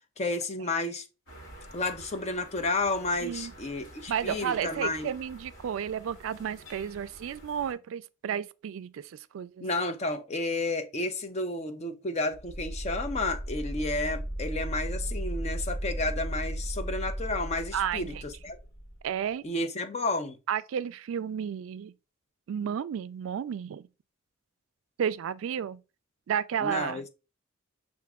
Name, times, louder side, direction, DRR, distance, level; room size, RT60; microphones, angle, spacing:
voice 1, 0.2-1.0 1.7-5.1 9.6-18.1 18.4-18.6 19.4-20.4 26.6-27.0, left 2 dB, 30° left, 0.5 m, -31 dB
sound 1, 1.3-7.7, right 1 dB, 60° left, 1.5 m, -49 dB
voice 2, 3.2-3.5 4.1-9.7 17.7-18.2 19.0-19.4 20.5-21.9 22.5-23.9 25.0-25.8 26.3-27.0, right 8 dB, 75° right, 0.3 m, -32 dB
sound 2, 12.3-19.0, right 1 dB, 85° left, 1.5 m, -35 dB
5.9 x 2.5 x 3.5 m
head